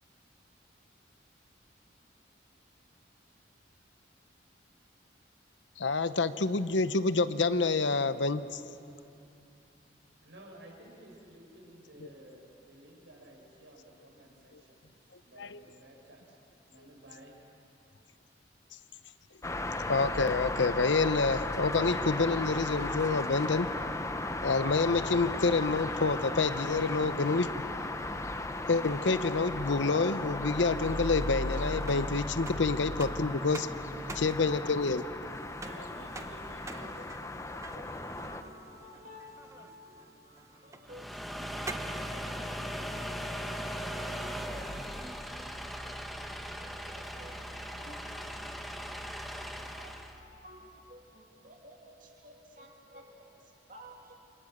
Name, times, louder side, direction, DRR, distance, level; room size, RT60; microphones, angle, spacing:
voice 1, 5.8-8.6 12.0-12.1 15.4-15.6 19.9-23.7 24.4-27.5 28.7-33.7 34.2-35.0, left 3 dB, 80° left, 12 dB, 0.8 m, -28 dB
voice 2, 10.2-14.8 15.2-16.4 16.7-17.4 35.6-37.0, right 1 dB, 85° right, -1 dB, 6.2 m, -53 dB
sound 1, 19.4-38.4, left 2 dB, 15° left, 0.9 m, -36 dB
sound 2, 30.5-42.1, right 3 dB, 15° right, 0.8 m, -49 dB
voice 3, 35.5-54.1, equal, 45° right, 0 dB, 2.3 m, -54 dB
sound 3, 40.8-50.2, equal, ahead, 1.1 m, -39 dB
29.0 x 24.0 x 6.7 m, 2.7 s
head